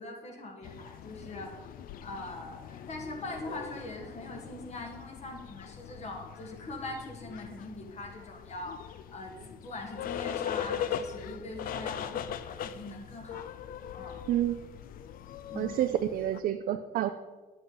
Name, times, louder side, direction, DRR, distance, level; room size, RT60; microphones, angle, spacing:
voice 1, 0.0-1.6 2.0-8.8 9.1-13.5 13.9-14.2 15.5-15.8, left 2 dB, 40° left, 2 dB, 1.7 m, -42 dB
sound 1, 0.6-16.4, left 9 dB, 60° left, 0.5 m, -40 dB
voice 2, 14.3-14.6 15.6-17.1, right 12 dB, 60° right, 8 dB, 0.4 m, -29 dB
9.6 x 7.8 x 3.9 m, 1.4 s
cardioid pair, 110°, 17 cm